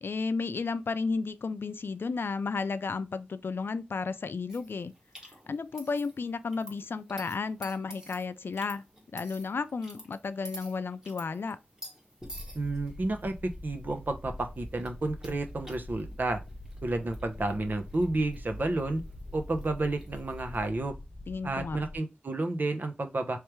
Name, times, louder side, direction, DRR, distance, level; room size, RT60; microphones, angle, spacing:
voice 1, 0.0-4.9 5.2-8.8 9.1-11.6 21.3-21.8, left 4 dB, 80° left, 0.4 m, -33 dB
sound 1, 4.5-20.7, right 1 dB, 20° right, 1.4 m, -51 dB
sound 2, 12.2-22.0, left 1 dB, 25° left, 0.6 m, -44 dB
voice 2, 12.5-13.3 13.6-16.4 16.8-19.0 19.3-20.9 21.4-23.4, right 2 dB, 55° right, 0.8 m, -31 dB
3.4 x 3.2 x 3.0 m
wide cardioid pair, 90°, 4 cm